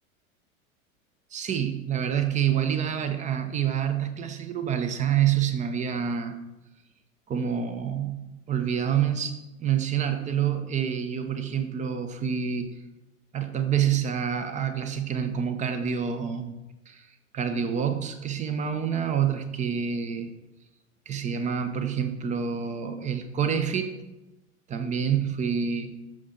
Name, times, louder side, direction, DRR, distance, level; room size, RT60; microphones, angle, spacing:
voice 1, 1.3-6.4 7.3-12.7 13.3-16.5 16.9-17.0 17.3-20.3 21.1-23.9 24.7-25.9, right 8 dB, 15° right, 9 dB, 0.7 m, -27 dB
13.5 x 5.9 x 3.8 m, 1.0 s
figure-of-eight pair, 90°, 42 cm